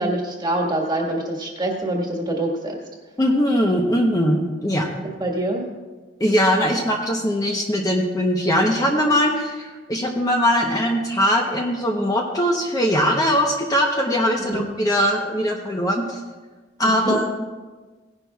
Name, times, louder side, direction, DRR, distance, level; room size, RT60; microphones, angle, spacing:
voice 1, 0.0-2.8 5.2-5.6 14.4-14.7 16.8-17.2, right 1 dB, 20° right, 0 dB, 1.5 m, -25 dB
voice 2, 3.2-4.9 6.2-16.2 16.8-17.2, equal, 20° left, 0 dB, 0.8 m, -21 dB
17.5 x 10.5 x 2.3 m, 1.3 s
head